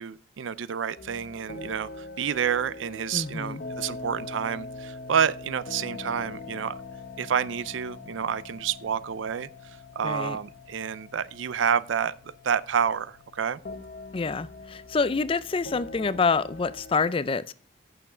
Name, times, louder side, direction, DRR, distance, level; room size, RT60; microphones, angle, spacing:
voice 1, 0.0-6.7 7.2-9.5 10.0-13.6, right 7 dB, 70° right, 0.4 m, -29 dB
sound 1, 1.0-17.0, left 2 dB, 50° left, 0.9 m, -42 dB
voice 2, 3.1-3.6 10.0-10.4 14.1-17.5, left 4 dB, 25° left, 0.4 m, -27 dB
8.3 x 6.9 x 4.9 m
head